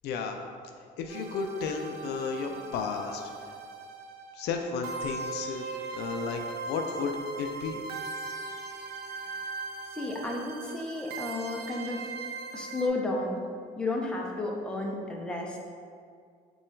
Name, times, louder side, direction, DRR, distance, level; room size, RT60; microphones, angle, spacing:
voice 1, 0.0-0.4 1.0-3.3 4.3-5.6 5.9-6.4 6.7-7.8, left 5 dB, 75° left, 4 dB, 0.4 m, -33 dB
sound 1, 1.1-12.9, right 4 dB, 75° right, 0.4 m, -39 dB
voice 2, 9.9-12.0 12.5-13.4 13.8-15.6, left 2 dB, 5° left, -2 dB, 0.5 m, -32 dB
3.7 x 2.3 x 4.4 m, 2.2 s
cardioid pair, 110°, 17 cm